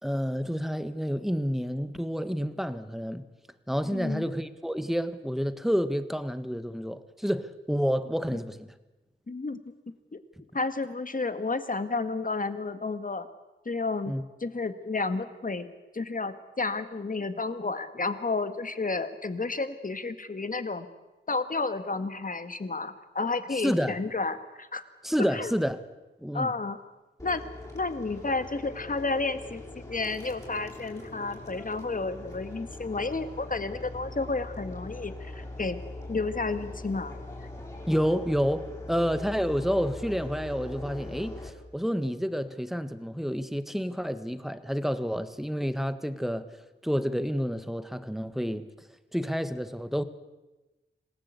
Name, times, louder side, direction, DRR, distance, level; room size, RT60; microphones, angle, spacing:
voice 1, 0.0-3.2 3.7-8.7 14.1-14.2 23.5-24.0 25.0-25.8 26.2-26.5 37.9-46.5 46.8-48.7 49.1-50.0, equal, ahead, 1.6 m, -29 dB
voice 2, 3.9-4.2 9.3-9.6 10.1-10.2 10.5-13.3 13.7-14.1 14.4-20.9 21.3-24.8 25.2-25.5 26.3-26.8 27.2-27.4 27.7-35.8 36.1-37.1, left 3 dB, 40° left, 1.9 m, -31 dB
sound 1, 27.2-41.5, left 2 dB, 15° left, 5.9 m, -41 dB
26.5 x 19.0 x 8.3 m
wide cardioid pair, 70°, 20 cm